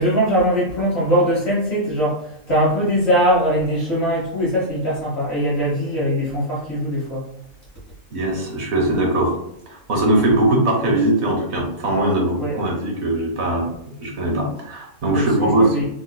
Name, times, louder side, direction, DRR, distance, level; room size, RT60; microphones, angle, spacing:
voice 1, 0.0-7.2 12.4-12.6 15.1-15.8, equal, 55° left, -7 dB, 1.4 m, -21 dB
voice 2, 8.1-9.4 9.7-13.7 14.0-15.8, right 1 dB, 60° right, 0 dB, 1.1 m, -20 dB
3.7 x 2.7 x 2.2 m, 0.78 s
omnidirectional pair, 1.4 m